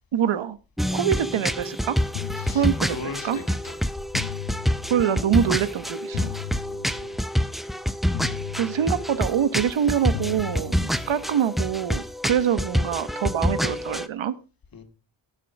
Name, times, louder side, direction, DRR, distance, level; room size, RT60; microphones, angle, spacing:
voice 1, 0.1-0.6 0.9-2.0 2.5-3.0 3.2-3.4 4.9-6.4 8.6-14.3, right 9 dB, 80° right, 1.2 m, -24 dB
sound 1, 0.8-14.1, equal, ahead, 0.5 m, -27 dB
sound 2, 2.1-3.3 4.1-5.3 6.1-7.3 8.1-9.3 10.1-11.3, left 18 dB, 85° left, 0.6 m, -37 dB
voice 2, 2.4-3.7 6.7-7.2 14.7-14.8, left 5 dB, 50° left, 2.5 m, -38 dB
17.0 x 7.6 x 4.8 m
wide cardioid pair, 160°, 46 cm